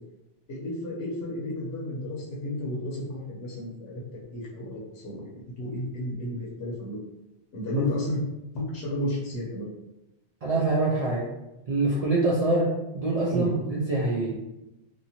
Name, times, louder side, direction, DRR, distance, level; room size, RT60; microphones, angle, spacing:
voice 1, 0.5-5.3 5.6-7.0 7.5-8.2 8.5-9.7 13.3-13.5, left 1 dB, 65° left, -5 dB, 0.9 m, -32 dB
voice 2, 10.4-11.3 11.7-12.7 12.9-14.4, right 2 dB, 60° right, -5 dB, 0.4 m, -25 dB
2.7 x 2.4 x 2.8 m, 0.95 s
omnidirectional pair, 1.2 m